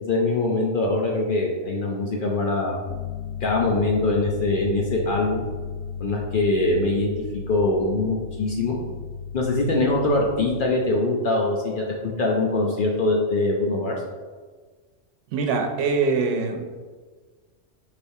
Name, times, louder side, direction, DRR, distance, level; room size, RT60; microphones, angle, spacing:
voice 1, 0.0-2.8 3.4-5.4 6.0-7.1 7.5-8.8 9.3-13.9, left 2 dB, 60° left, -1 dB, 0.6 m, -23 dB
sound 1, 2.8-10.7, left 6 dB, 90° left, 1.0 m, -35 dB
voice 2, 15.3-16.7, right 4 dB, 80° right, 4 dB, 0.9 m, -23 dB
4.6 x 3.3 x 2.6 m, 1.4 s
omnidirectional pair, 1.2 m